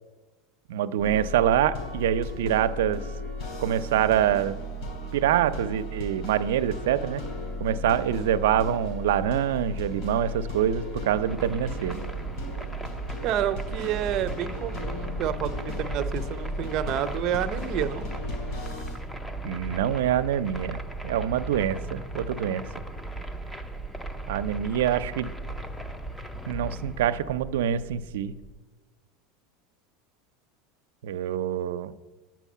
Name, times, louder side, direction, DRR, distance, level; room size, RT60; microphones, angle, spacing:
voice 1, 0.7-3.0 3.6-4.6 5.1-7.2 7.6-12.0 19.4-22.6 24.3-25.3 26.5-28.3 31.0-31.9, right 10 dB, 90° right, 13 dB, 0.5 m, -25 dB
sound 1, 1.0-19.0, left 1 dB, 55° left, 3.8 m, -35 dB
sound 2, 11.3-28.6, right 2 dB, 5° left, 0.5 m, -37 dB
voice 2, 13.2-18.1, right 10 dB, 45° right, 9 dB, 0.6 m, -29 dB
9.2 x 6.0 x 8.3 m, 1.2 s
supercardioid pair, 145°, 0 cm